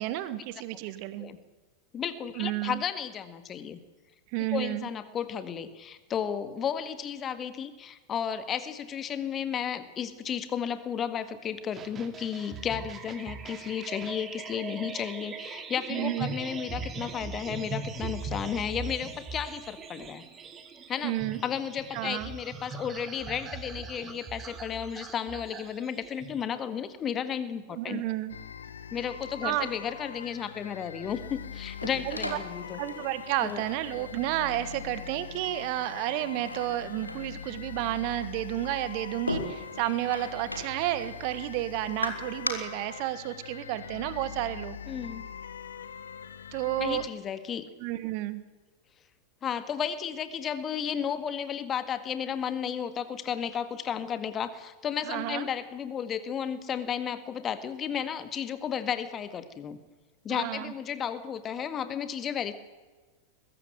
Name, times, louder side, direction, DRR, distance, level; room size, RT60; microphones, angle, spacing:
voice 1, 0.0-1.3 2.3-2.8 4.3-4.9 15.9-16.4 21.0-21.4 21.9-22.3 27.7-28.4 29.4-29.7 32.0-32.4 32.8-44.8 46.5-47.0 47.8-48.4 55.0-55.5 60.3-60.7, right 15 dB, 45° right, 14 dB, 1.6 m, -31 dB
voice 2, 1.9-3.8 4.5-20.2 20.9-21.1 21.4-28.0 28.9-32.8 33.4-33.6 44.9-45.3 46.8-47.7 49.4-59.8 60.2-62.5, left 8 dB, 25° left, 12 dB, 1.8 m, -33 dB
sound 1, 11.7-26.4, right 4 dB, 25° right, 2.4 m, -40 dB
sound 2, 28.3-47.1, left 8 dB, 65° left, 1.3 m, -43 dB
sound 3, 31.1-42.5, left 1 dB, 85° left, 2.6 m, -40 dB
21.5 x 14.5 x 9.2 m, 1.3 s
figure-of-eight pair, 90°, 0 cm